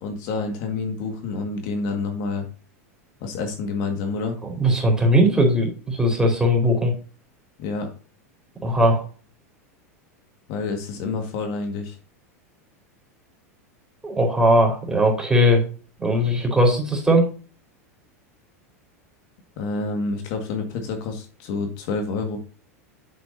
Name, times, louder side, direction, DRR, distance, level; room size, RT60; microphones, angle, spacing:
voice 1, 0.0-2.5 3.2-4.4 7.6-7.9 10.5-12.0 19.6-22.4, left 4 dB, 55° left, 4 dB, 1.9 m, -28 dB
voice 2, 4.4-6.9 8.6-9.0 14.0-15.6 16.0-17.2, equal, 10° right, 0 dB, 4.0 m, -19 dB
8.7 x 7.4 x 2.8 m, 0.37 s
hypercardioid pair, 95°, 8 cm